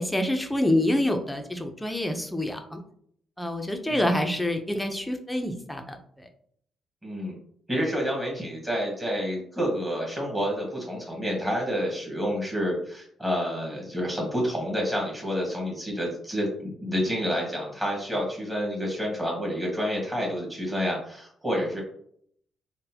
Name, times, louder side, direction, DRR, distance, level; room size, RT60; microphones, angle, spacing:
voice 1, 0.0-2.8 3.4-6.3 21.6-21.7, left 1 dB, 5° left, 5 dB, 0.5 m, -27 dB
voice 2, 3.9-4.2 7.0-7.3 7.7-21.8, equal, 15° right, -2 dB, 1.3 m, -29 dB
3.8 x 2.1 x 2.8 m, 0.65 s
cardioid pair, 90°, 0 cm